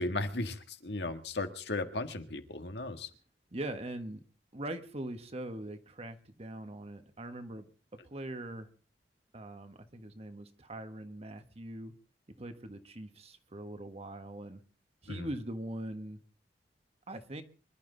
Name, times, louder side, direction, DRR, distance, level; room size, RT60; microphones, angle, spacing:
voice 1, 0.0-3.1 15.1-15.3, left 2 dB, 70° left, 7 dB, 1.8 m, -36 dB
voice 2, 3.5-4.2 4.5-7.6 8.0-8.7 9.3-11.9 12.4-14.6 15.0-16.2 17.1-17.4, right 1 dB, 35° right, 8 dB, 1.5 m, -42 dB
25.5 x 12.0 x 4.0 m, 0.38 s
head